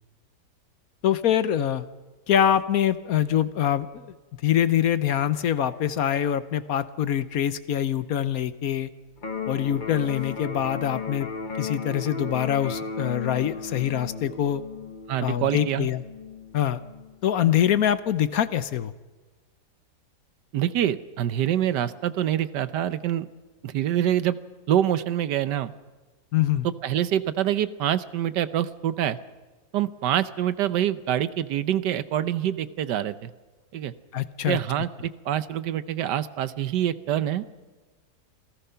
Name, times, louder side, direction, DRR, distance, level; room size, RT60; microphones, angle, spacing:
voice 1, 1.0-1.8 2.3-4.1 4.4-8.9 9.5-11.3 11.6-14.6 15.2-16.0 16.5-16.8 17.2-18.9 26.3-26.7 34.1-34.6, left 10 dB, 65° left, 14 dB, 1.2 m, -24 dB
Electric guitar, 9.2-17.2, left 5 dB, 30° left, 1.1 m, -35 dB
voice 2, 15.1-15.9 20.5-23.2 23.6-24.4 24.7-25.7 26.6-29.2 29.7-33.3 33.7-33.9 34.5-37.5, right 11 dB, 80° right, 14 dB, 1.5 m, -26 dB
27.5 x 17.5 x 5.7 m, 1.3 s
omnidirectional pair, 1.8 m